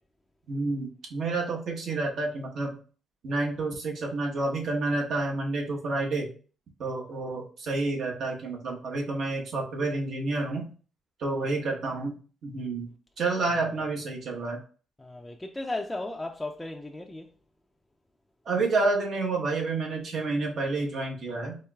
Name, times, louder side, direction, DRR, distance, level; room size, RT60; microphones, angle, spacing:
voice 1, 0.5-2.8 3.2-6.3 6.8-10.6 11.2-12.2 12.4-12.9 13.2-14.6 18.4-21.6, right 3 dB, 65° right, 1.1 m, -29 dB
voice 2, 15.0-17.3, left 2 dB, 10° left, 0.4 m, -35 dB
4.3 x 3.1 x 2.3 m
cardioid pair, 90°, 0 cm